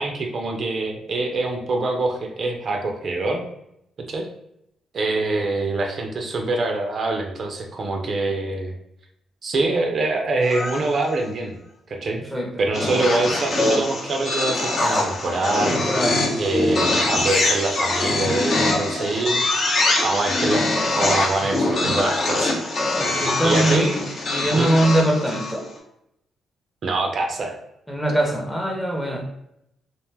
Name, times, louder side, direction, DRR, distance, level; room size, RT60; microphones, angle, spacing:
voice 1, 0.0-3.4 4.1-4.3 4.9-8.7 9.4-11.6 11.9-12.2 12.6-15.8 16.4-19.4 20.0-20.6 20.9-22.5 23.4-23.9 24.5-24.7 26.8-27.5, right 2 dB, 50° right, 2 dB, 0.4 m, -24 dB
sound 1, 10.4-11.2 12.7-25.7, left 2 dB, 50° left, 0.7 m, -23 dB
voice 2, 15.7-16.2 21.4-21.5 23.0-24.0 24.3-25.7 27.9-29.2, right 1 dB, 5° left, 0 dB, 0.6 m, -22 dB
2.4 x 2.2 x 3.3 m, 0.80 s
cardioid pair, 90°, 0 cm